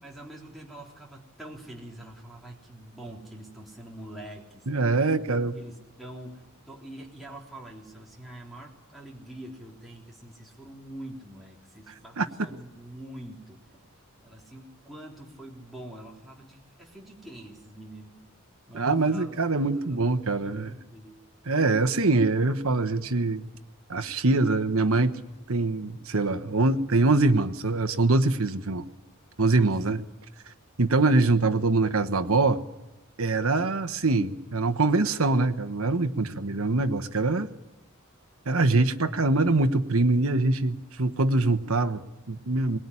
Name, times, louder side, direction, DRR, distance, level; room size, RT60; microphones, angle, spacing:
voice 1, 0.0-4.7 5.1-13.8 14.2-18.2 18.7-20.1 20.4-21.2 29.5-29.7 39.3-39.6, right 1 dB, ahead, -4 dB, 3.5 m, -45 dB
voice 2, 4.7-5.5 12.2-12.3 18.7-20.7 21.5-23.5 23.9-25.2 25.5-28.8 29.4-30.0 30.8-32.6 33.2-37.5 38.5-42.8, right 3 dB, 70° right, 9 dB, 1.2 m, -24 dB
22.5 x 20.5 x 9.9 m, 1.1 s
head